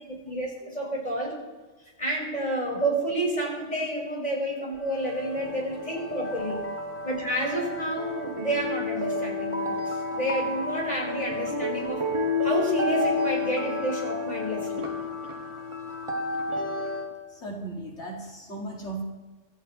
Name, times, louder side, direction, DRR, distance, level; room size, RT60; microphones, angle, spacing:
voice 1, 0.0-1.4 2.0-6.6 7.0-12.0 12.4-14.9, right 1 dB, 35° left, -4 dB, 5.3 m, -30 dB
sound 1, 4.8-17.1, left 2 dB, 25° right, 1.9 m, -31 dB
voice 2, 17.3-19.0, right 2 dB, 70° left, -2 dB, 2.7 m, -37 dB
25.5 x 13.5 x 3.1 m, 1.3 s
omnidirectional pair, 1.2 m